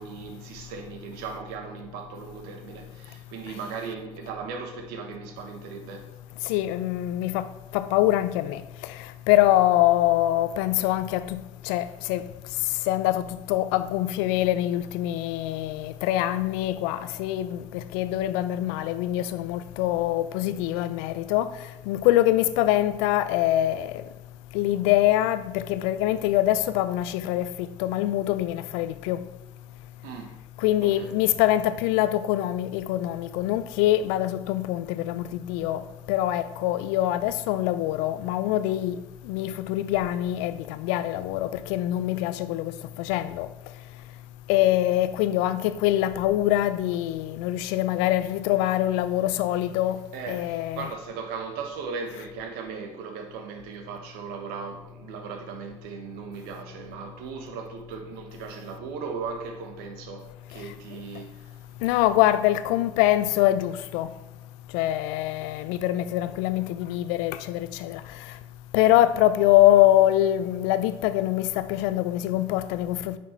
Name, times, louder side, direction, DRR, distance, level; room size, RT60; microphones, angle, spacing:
voice 1, 0.0-6.1 30.0-30.4 30.8-31.1 50.1-61.6, right 5 dB, 70° right, 1.5 m, -37 dB
voice 2, 6.4-7.5 7.7-12.2 12.9-21.5 21.9-24.0 24.5-29.2 30.6-43.5 44.5-50.0 50.3-50.9 60.9-61.0 61.8-64.1 64.7-68.0 68.3-68.4 68.7-73.2, left 14 dB, 70° left, 0.6 m, -24 dB
9.2 x 6.1 x 4.6 m
hypercardioid pair, 55°, 17 cm